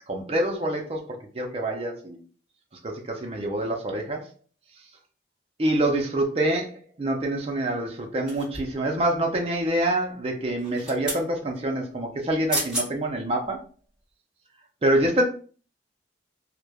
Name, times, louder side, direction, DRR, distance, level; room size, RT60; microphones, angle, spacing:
voice 1, 0.1-2.2 2.8-4.3 5.6-13.6 14.8-15.2, right 1 dB, 35° right, 2 dB, 0.4 m, -26 dB
sound 1, 8.3-8.9 10.6-11.3 12.2-12.3 12.5-12.9 13.4-13.6, equal, 5° right, 1.3 m, -31 dB
3.0 x 2.1 x 2.2 m, 0.39 s
head